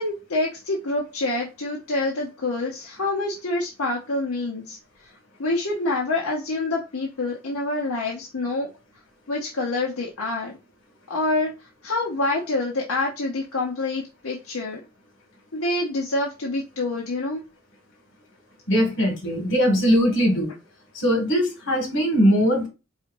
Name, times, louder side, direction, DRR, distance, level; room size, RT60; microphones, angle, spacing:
voice 1, 0.0-4.8 5.0-5.1 5.4-8.7 9.3-10.5 11.1-14.8 15.5-17.4, left 2 dB, 75° left, -3 dB, 1.0 m, -27 dB
voice 2, 18.7-20.5 20.9-22.7, equal, 55° left, 2 dB, 2.1 m, -20 dB
4.5 x 4.1 x 2.6 m, 0.28 s
head